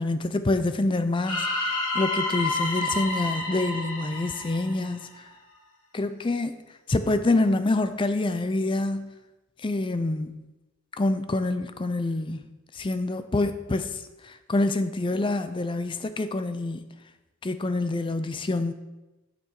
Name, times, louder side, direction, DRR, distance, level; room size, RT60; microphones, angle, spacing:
voice 1, 0.0-5.1 5.9-6.6 6.9-9.1 9.6-10.5 11.0-12.4 12.7-16.8 17.4-18.7, left 2 dB, 20° left, 10 dB, 0.4 m, -26 dB
sound 1, 1.2-5.3, left 2 dB, 85° left, 2.4 m, -29 dB
7.2 x 6.7 x 4.7 m, 1.1 s
head